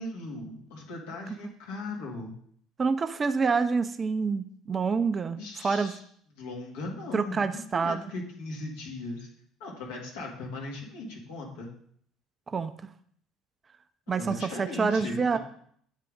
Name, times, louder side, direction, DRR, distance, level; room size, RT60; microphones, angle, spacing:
voice 1, 0.0-2.3 5.4-6.0 6.4-7.5 7.7-9.3 9.6-11.7 14.2-15.4, left 2 dB, 65° left, -1 dB, 1.8 m, -38 dB
voice 2, 2.8-5.9 7.1-8.0 12.5-12.7 14.1-15.4, right 5 dB, 30° right, 11 dB, 0.5 m, -27 dB
8.3 x 3.7 x 5.1 m, 0.63 s
figure-of-eight pair, 60°, 0 cm